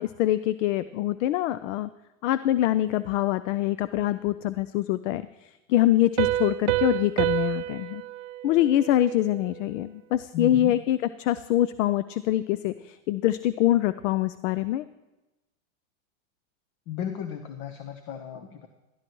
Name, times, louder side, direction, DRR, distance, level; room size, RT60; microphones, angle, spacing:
voice 1, 0.0-1.9 2.2-8.0 8.4-14.9, left 13 dB, 65° left, 15 dB, 0.5 m, -24 dB
Piano, 6.2-9.6, right 14 dB, 70° right, 0.6 m, -28 dB
voice 2, 10.3-10.7 16.9-18.7, left 8 dB, 45° left, 7 dB, 1.0 m, -34 dB
16.0 x 13.0 x 3.1 m, 1.0 s
supercardioid pair, 125°, 40 cm